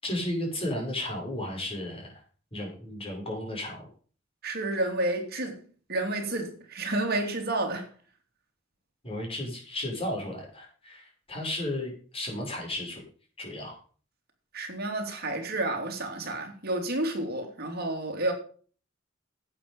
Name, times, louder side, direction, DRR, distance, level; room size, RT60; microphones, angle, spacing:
voice 1, 0.0-2.2 2.5-3.8 9.0-13.0 13.4-13.8, left 1 dB, 30° left, 6.0 m, -34 dB
voice 2, 4.4-5.6 5.9-7.9 14.5-18.3, right 2 dB, 55° right, 3.2 m, -30 dB
11.5 x 8.8 x 5.5 m
head